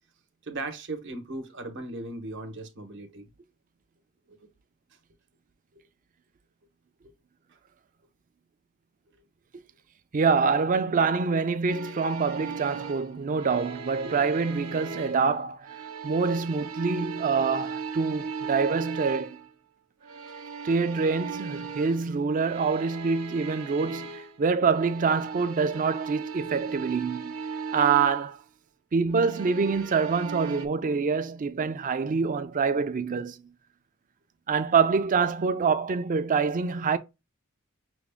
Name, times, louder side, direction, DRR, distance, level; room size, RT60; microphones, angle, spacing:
voice 1, 0.5-3.3 4.3-4.4 5.7-5.8 7.0-7.1, right 2 dB, 60° right, 0.9 m, -37 dB
voice 2, 10.1-15.6 16.0-19.4 20.6-27.3 27.7-28.4 28.9-33.4 34.5-37.0, right 5 dB, 40° right, 0.4 m, -25 dB
sound 1, 11.7-15.3 15.6-19.5 20.0-24.4 24.7-28.3 29.1-30.7, right 5 dB, 80° right, 0.7 m, -37 dB
6.0 x 2.1 x 3.4 m
head